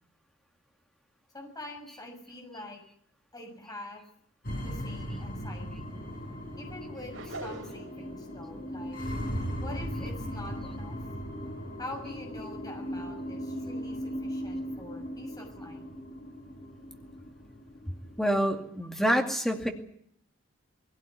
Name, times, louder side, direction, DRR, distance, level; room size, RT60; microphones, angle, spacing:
voice 1, 1.3-2.8 3.3-4.0 4.6-6.0 6.6-9.0 9.6-11.0 11.8-15.9, left 1 dB, 20° left, 2 dB, 6.6 m, -45 dB
sound 1, 4.4-18.4, equal, 45° left, 6.4 m, -38 dB
sound 2, 7.1-8.0, right 2 dB, 75° right, 4.1 m, -41 dB
voice 2, 18.2-19.7, equal, ahead, 2 dB, 2.3 m, -27 dB
21.0 x 17.0 x 9.5 m, 0.66 s
head